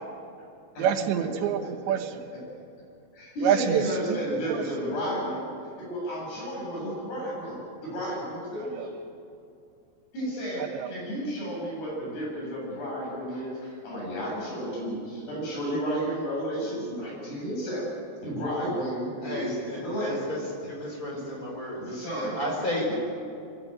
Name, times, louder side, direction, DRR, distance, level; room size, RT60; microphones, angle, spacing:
voice 1, 0.8-2.1 3.4-3.8 4.1-4.6 8.8-8.9 10.7-10.9, right 9 dB, 90° right, 6 dB, 3.6 m, -26 dB
voice 2, 3.1-5.5 5.8-8.9 10.1-17.8 18.2-20.2 21.1-21.2 21.6-22.4 22.9-23.0, equal, 65° left, -4 dB, 9.9 m, -32 dB
voice 3, 19.2-20.4 20.6-21.8 22.4-22.9, left 1 dB, 20° left, -2 dB, 5.5 m, -32 dB
23.5 x 15.5 x 9.1 m, 2.5 s
omnidirectional pair, 5.0 m